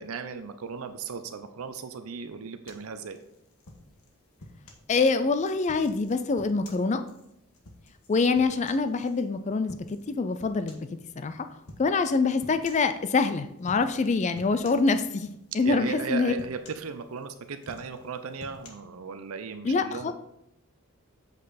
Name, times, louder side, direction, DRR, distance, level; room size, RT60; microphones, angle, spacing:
voice 1, 0.0-3.2 15.6-20.1, right 5 dB, 80° right, 8 dB, 0.6 m, -36 dB
sound 1, 2.7-4.9 5.4-9.2 9.7-10.1 10.4-11.0 11.7-11.9 12.4-12.9 13.6-14.1 14.3-15.3 15.7-16.1 16.4-17.2 17.6-18.7, left 2 dB, 80° left, 1.3 m, -49 dB
voice 2, 4.9-7.0 8.1-10.9 11.2-11.5 11.8-15.3 15.5-16.3 19.6-20.1, left 4 dB, 35° left, 10 dB, 0.4 m, -25 dB
7.8 x 5.2 x 4.2 m, 0.78 s
head